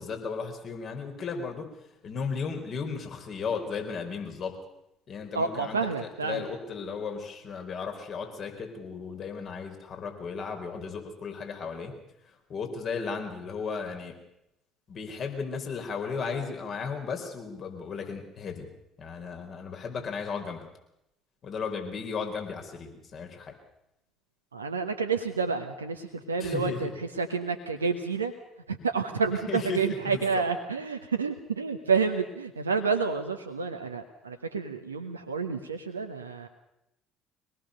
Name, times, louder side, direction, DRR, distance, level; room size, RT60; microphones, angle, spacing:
voice 1, 0.0-4.5 5.1-11.9 12.2-14.1 14.9-18.7 19.0-20.7 21.4-23.5 26.4-26.9 29.5-30.4, left 5 dB, 50° left, 4 dB, 4.6 m, -35 dB
voice 2, 5.3-6.4 24.5-26.9 27.2-28.3 28.7-36.5, right 5 dB, 90° right, 5 dB, 1.2 m, -29 dB
24.0 x 19.0 x 6.7 m, 0.87 s
hypercardioid pair, 55°, 0 cm